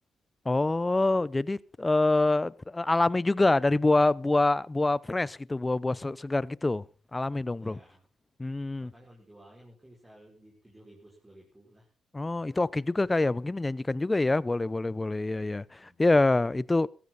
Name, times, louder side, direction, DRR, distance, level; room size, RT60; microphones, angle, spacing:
voice 1, 0.4-6.8 7.1-7.8 8.4-8.9 12.1-16.9, left 2 dB, 20° left, 0.7 m, -26 dB
voice 2, 7.6-8.0 8.8-11.9 15.8-16.0, right 1 dB, 15° right, 5.7 m, -55 dB
16.5 x 14.5 x 4.2 m
supercardioid pair, 65°, 0 cm